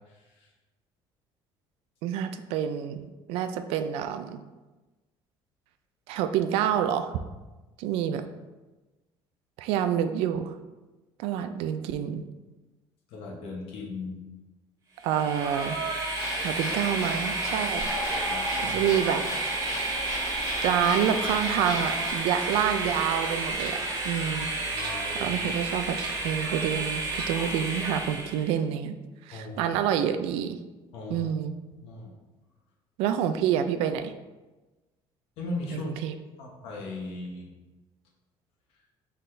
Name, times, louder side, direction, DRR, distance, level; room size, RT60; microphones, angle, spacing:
voice 1, 2.0-4.4 6.1-7.1 7.8-8.2 9.6-10.5 11.2-12.2 15.0-15.8 16.4-17.9 18.6-19.2 20.6-24.5 25.1-26.0 26.2-28.9 29.3-30.6 31.1-31.5 33.0-34.1 35.7-36.2, right 9 dB, 85° right, 9 dB, 0.3 m, -28 dB
voice 2, 13.1-14.2 18.3-18.8 24.7-25.3 29.3-29.7 30.9-31.3 31.8-32.1 35.4-35.9 36.4-37.5, left 2 dB, 75° left, -2 dB, 1.1 m, -37 dB
Train, 15.0-28.5, right 3 dB, 35° right, 1.2 m, -31 dB
sound 1, 16.2-22.1, left 1 dB, 40° left, 1.1 m, -34 dB
sound 2, 21.4-21.8 22.5-23.1 23.4-24.0 24.7-25.2 25.9-26.4 27.1-27.6, right 4 dB, 65° right, 1.2 m, -41 dB
4.0 x 4.0 x 3.2 m, 1.2 s
cardioid pair, 135°, 10 cm